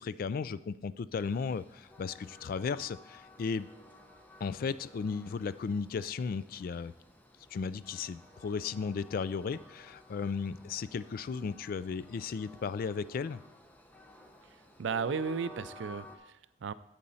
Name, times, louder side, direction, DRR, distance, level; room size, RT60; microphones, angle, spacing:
voice 1, 0.0-3.7 4.4-6.9 7.5-13.4, left 5 dB, 50° left, 16 dB, 0.3 m, -35 dB
Train, 1.2-16.2, left 1 dB, 10° left, 0.7 m, -54 dB
voice 2, 14.8-16.7, right 5 dB, 75° right, 15 dB, 0.4 m, -35 dB
8.5 x 7.5 x 4.1 m, 0.83 s
head